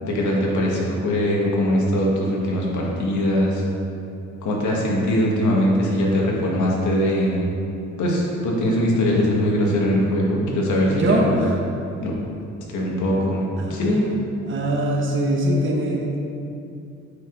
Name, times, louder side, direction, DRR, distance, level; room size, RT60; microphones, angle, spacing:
voice 1, 0.0-3.6 4.4-7.4 8.0-11.3 12.0-12.1 12.7-14.1, equal, 75° left, -3 dB, 1.7 m, -21 dB
voice 2, 10.9-11.5 13.6-13.8 14.4-16.2, right 1 dB, 40° right, -1 dB, 1.1 m, -22 dB
8.9 x 5.0 x 3.9 m, 2.6 s
cardioid pair, 90°, 30 cm